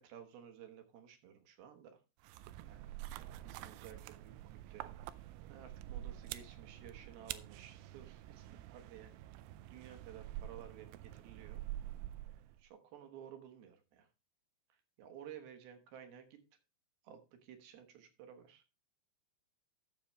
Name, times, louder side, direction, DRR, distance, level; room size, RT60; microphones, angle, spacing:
voice 1, 0.0-2.0 2.6-9.1 9.7-11.6 12.6-14.1 14.7-16.4 17.0-18.6, right 9 dB, 65° right, 7 dB, 2.8 m, -55 dB
sound 1, 2.2-12.6, right 14 dB, 85° right, 2.9 m, -47 dB
14.5 x 6.8 x 3.2 m, 0.30 s
omnidirectional pair, 5.3 m